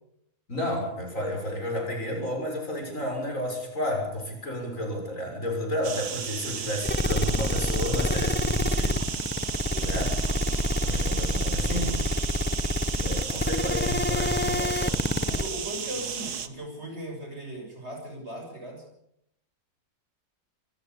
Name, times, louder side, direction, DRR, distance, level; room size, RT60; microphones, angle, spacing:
voice 1, 0.5-9.0 9.8-10.1 10.7-12.0 13.0-15.0, equal, 55° left, 2 dB, 7.1 m, -32 dB
sound 1, 5.8-16.5, right 7 dB, 80° right, 1.9 m, -34 dB
sound 2, 6.8-15.5, left 1 dB, 15° left, 0.4 m, -27 dB
voice 2, 15.3-18.8, right 1 dB, 40° right, 2 dB, 7.5 m, -38 dB
26.5 x 15.0 x 8.3 m, 0.77 s
omnidirectional pair, 1.7 m